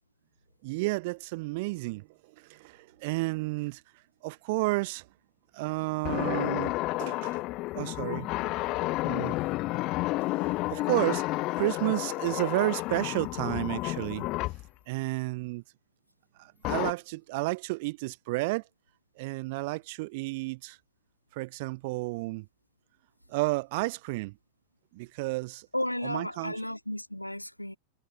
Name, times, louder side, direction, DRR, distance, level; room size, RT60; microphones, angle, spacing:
voice 1, 0.6-2.1 2.4-3.8 4.2-5.0 5.5-7.4 7.7-8.3 9.0-9.4 10.7-11.3 11.6-14.2 14.9-15.6 16.4-18.6 19.2-20.8 21.3-22.5 23.3-24.3 24.9-25.7 26.0-26.6, right 24 dB, 50° right, 0.8 m, -31 dB
sound 1, 6.0-14.7 16.6-16.9, left 20 dB, 40° left, 1.0 m, -31 dB
voice 2, 25.7-27.8, left 1 dB, 85° left, 2.7 m, -33 dB
figure-of-eight pair, 90°, 0 cm